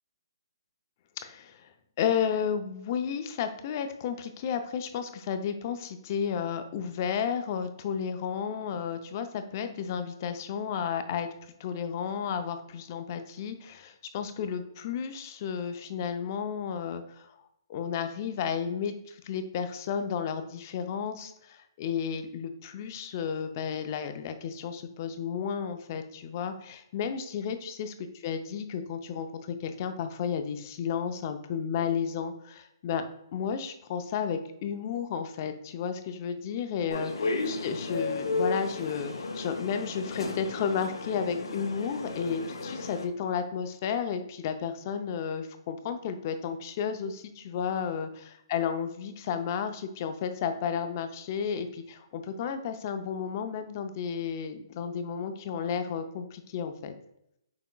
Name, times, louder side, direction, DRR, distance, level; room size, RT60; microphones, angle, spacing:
voice 1, 1.2-11.3 11.6-17.4 17.7-27.9 28.2-33.0 33.3-56.9, left 7 dB, 35° left, 8 dB, 0.5 m, -32 dB
sound 1, 36.9-43.1, left 3 dB, 85° left, 0.7 m, -33 dB
5.9 x 3.6 x 2.2 m, 0.77 s
hypercardioid pair, 155°, 3 cm